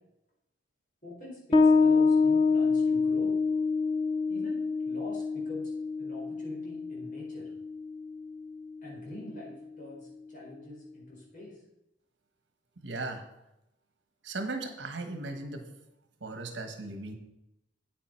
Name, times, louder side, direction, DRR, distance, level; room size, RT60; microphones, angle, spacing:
voice 1, 1.0-3.4 4.3-4.6 4.9-7.5 8.8-11.6, left 1 dB, 45° left, -4 dB, 4.4 m, -45 dB
Bass guitar, 1.5-8.7, left 4 dB, 25° left, 0.6 m, -26 dB
voice 2, 12.8-13.2 14.2-15.6 16.2-17.2, right 2 dB, 75° right, 6 dB, 1.3 m, -37 dB
9.2 x 9.0 x 4.5 m, 0.88 s
head